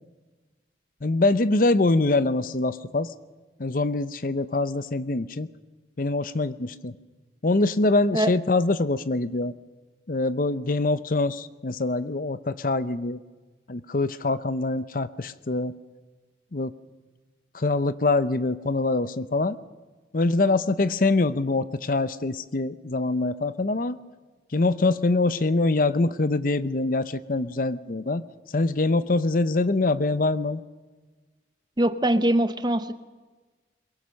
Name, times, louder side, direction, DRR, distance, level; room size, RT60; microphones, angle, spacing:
voice 1, 1.0-3.1 3.6-5.5 6.0-6.9 7.4-9.5 10.1-13.2 13.7-15.7 16.5-16.7 17.5-19.6 20.1-24.0 24.5-28.2 28.5-30.6, left 2 dB, 50° left, 14 dB, 0.7 m, -24 dB
voice 2, 31.8-32.9, right 1 dB, 25° right, 11 dB, 0.8 m, -22 dB
22.5 x 22.0 x 6.4 m, 1.3 s
head